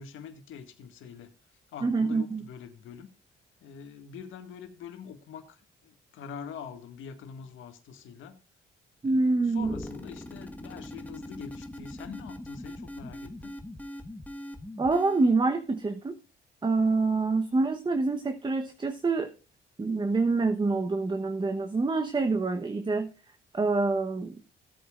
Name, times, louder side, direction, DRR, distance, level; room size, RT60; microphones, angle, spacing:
voice 1, 0.0-1.3 1.7-3.1 3.6-8.4 9.0-13.6, left 7 dB, 80° left, 7 dB, 1.8 m, -44 dB
voice 2, 1.8-2.4 9.0-9.7 14.8-16.2 16.6-19.3 19.8-23.1 23.5-24.4, right 3 dB, 25° right, 8 dB, 1.0 m, -26 dB
sound 1, 9.6-15.4, left 1 dB, 10° left, 1.5 m, -41 dB
16.5 x 8.6 x 2.5 m, 0.32 s
cardioid pair, 90°, 20 cm